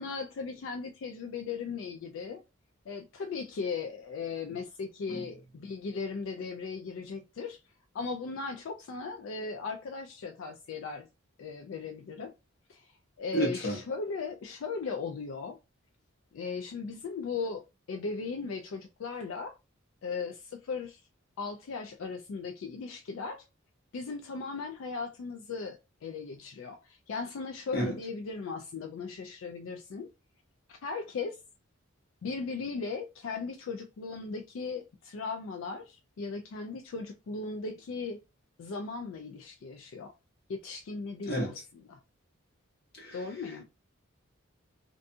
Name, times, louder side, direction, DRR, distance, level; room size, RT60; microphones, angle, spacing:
voice 1, 0.0-2.4 2.9-7.6 7.9-11.1 11.4-12.3 12.7-12.9 13.2-15.6 16.3-19.6 20.0-21.0 21.4-23.5 23.9-30.1 30.7-31.4 32.2-38.2 38.6-40.1 40.5-42.0 43.1-43.6, left 4 dB, 75° left, 0.3 m, -37 dB
voice 2, 13.3-13.8 27.7-27.9 41.3-41.5 43.0-43.2, right 1 dB, 50° left, 1.1 m, -30 dB
2.6 x 2.3 x 2.6 m
head